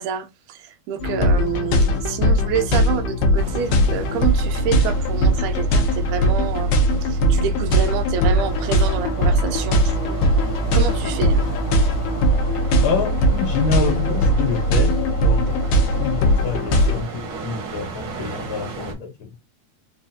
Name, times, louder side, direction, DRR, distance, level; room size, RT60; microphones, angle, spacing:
voice 1, 0.0-6.7 7.0-10.2 10.7-11.4, right 8 dB, 85° right, 2.1 m, -28 dB
sound 1, 1.0-17.0, equal, 85° left, 2.3 m, -19 dB
sound 2, 3.4-18.9, right 4 dB, 65° right, 1.1 m, -36 dB
voice 2, 12.8-14.9 15.2-15.5 16.0-19.3, left 5 dB, 65° left, 1.2 m, -27 dB
5.4 x 2.3 x 2.7 m
omnidirectional pair, 3.4 m